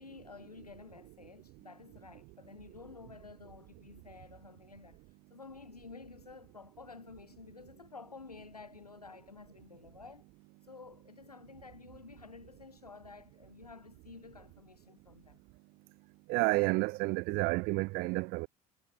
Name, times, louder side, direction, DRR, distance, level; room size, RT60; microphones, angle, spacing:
voice 1, 0.0-5.0 5.3-10.3 10.7-15.4, left 4 dB, 85° left, 1.9 m, -52 dB
voice 2, 16.3-18.5, right 25 dB, 50° right, 1.1 m, -30 dB
figure-of-eight pair, 65°, 19 cm